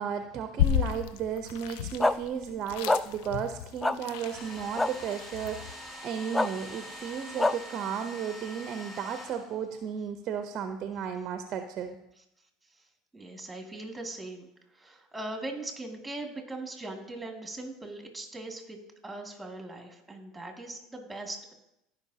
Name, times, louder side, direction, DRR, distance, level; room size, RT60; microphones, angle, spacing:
voice 1, 0.0-12.0, right 7 dB, 50° right, 7 dB, 0.7 m, -34 dB
sound 1, 0.6-5.7, left 10 dB, 70° left, 0.5 m, -32 dB
sound 2, 2.0-2.1 2.9-3.0 3.8-3.9 4.8-4.9 6.3-6.5 7.4-7.5, left 2 dB, 15° left, 0.4 m, -24 dB
Domestic sounds home sounds, 4.0-9.9, equal, 30° left, 2.1 m, -45 dB
voice 2, 13.1-14.5 14.7-18.8 19.0-21.5, right 2 dB, 10° right, 2 dB, 2.3 m, -40 dB
15.5 x 5.4 x 2.8 m, 0.84 s
hypercardioid pair, 80°, 0 cm